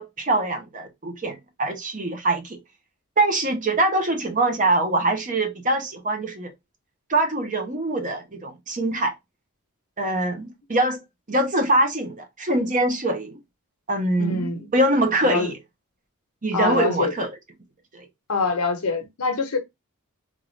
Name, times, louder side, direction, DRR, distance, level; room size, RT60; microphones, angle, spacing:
voice 1, 0.0-2.6 3.2-6.5 7.1-9.1 10.0-11.0 11.3-13.4 13.9-15.5 16.4-17.3 17.9-18.1, right 2 dB, 35° right, 0.9 m, -23 dB
voice 2, 14.2-14.7 15.2-15.5 16.5-17.1 18.3-19.6, left 4 dB, 85° left, 0.9 m, -25 dB
3.6 x 2.5 x 3.1 m
head